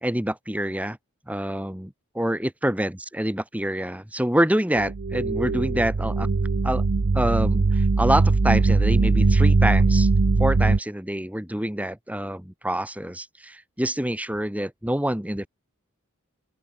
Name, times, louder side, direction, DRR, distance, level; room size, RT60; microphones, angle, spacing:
voice 1, 0.0-1.0 1.3-6.3 6.6-6.8 7.1-10.1 10.4-15.5, right 1 dB, 5° right, 1.7 m, -26 dB
sound 1, 4.8-10.8, right 3 dB, 55° right, 0.6 m, -20 dB
open air
head